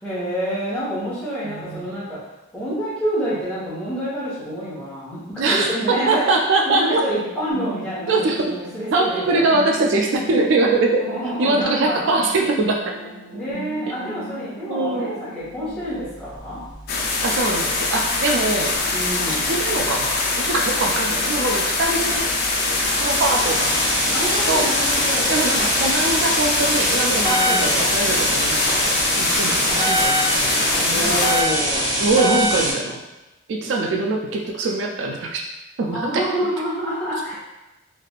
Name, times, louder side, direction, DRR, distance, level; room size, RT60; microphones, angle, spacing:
voice 1, 0.0-2.2 2.5-6.3 6.6-9.4 11.0-12.1 13.3-16.6 18.9-19.5 24.0-25.4 27.1-27.8 30.9-32.0 35.8-37.4, equal, 5° left, -11 dB, 1.1 m, -28 dB
voice 2, 1.4-1.9 5.4-7.0 8.1-8.5 8.9-11.0 11.4-12.8 14.7-15.2 15.6-15.8 17.2-18.8 19.3-22.3 23.0-23.9 24.5-24.7 25.3-31.3 32.0-33.0 33.5-35.4 35.8-36.3, right 3 dB, 65° right, 1 dB, 0.3 m, -22 dB
sound 1, 7.5-15.5, equal, 75° left, 0.9 m, -38 dB
sound 2, 15.8-32.7, equal, 15° right, 0.7 m, -25 dB
sound 3, 16.9-31.4, left 3 dB, 50° left, 0.4 m, -23 dB
3.3 x 2.4 x 2.4 m, 1.0 s
head